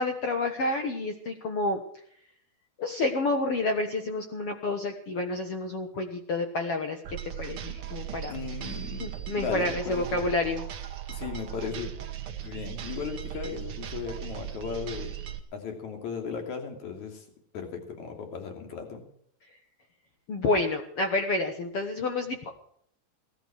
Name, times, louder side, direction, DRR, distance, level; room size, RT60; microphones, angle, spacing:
voice 1, 0.0-1.8 2.8-8.3 9.0-10.6 20.3-22.6, left 2 dB, 75° left, 4 dB, 1.3 m, -29 dB
sound 1, 7.0-15.4, right 11 dB, 90° right, 1.2 m, -38 dB
voice 2, 8.3-9.1 9.4-10.3 11.1-11.9 12.4-15.1 15.5-17.2 17.5-19.0, left 6 dB, 50° left, 3 dB, 3.9 m, -36 dB
18.0 x 13.0 x 4.9 m, 0.66 s
omnidirectional pair, 4.6 m